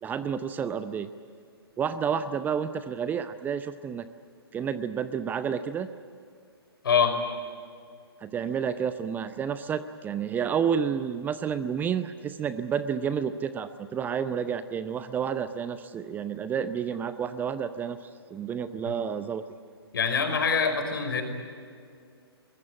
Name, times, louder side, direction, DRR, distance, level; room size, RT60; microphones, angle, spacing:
voice 1, 0.0-1.1 1.8-4.0 4.5-5.9 8.2-19.4, right 7 dB, 15° right, 12 dB, 0.6 m, -30 dB
voice 2, 6.8-7.2 19.9-21.2, left 6 dB, 60° left, 6 dB, 5.0 m, -24 dB
23.5 x 21.0 x 9.8 m, 2.4 s
figure-of-eight pair, 120°, 13 cm